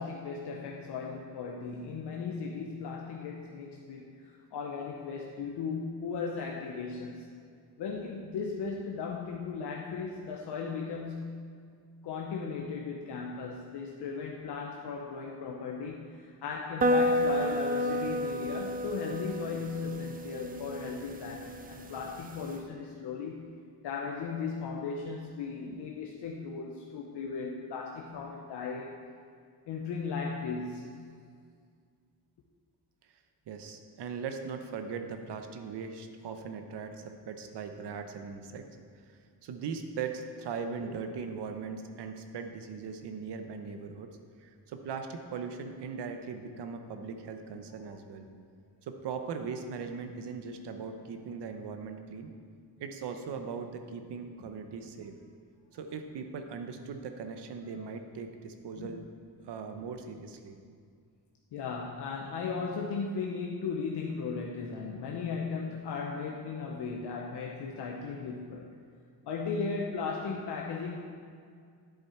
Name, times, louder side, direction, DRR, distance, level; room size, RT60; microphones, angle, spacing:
voice 1, 0.0-7.3 7.8-11.5 12.0-23.5 23.8-28.9 29.7-30.9 54.4-54.5 57.8-57.9 58.7-59.0 61.5-68.7 69.2-71.0, left 5 dB, 80° left, -1 dB, 0.9 m, -37 dB
sound 1, 16.8-22.6, equal, 25° right, 0.4 m, -31 dB
voice 2, 33.5-38.6 39.4-44.1 44.4-48.3 48.8-52.3 52.8-55.1 55.7-59.1 59.4-60.6, right 5 dB, 80° right, 6 dB, 0.9 m, -39 dB
10.5 x 7.7 x 4.4 m, 2.2 s
wide cardioid pair, 175°, 40 cm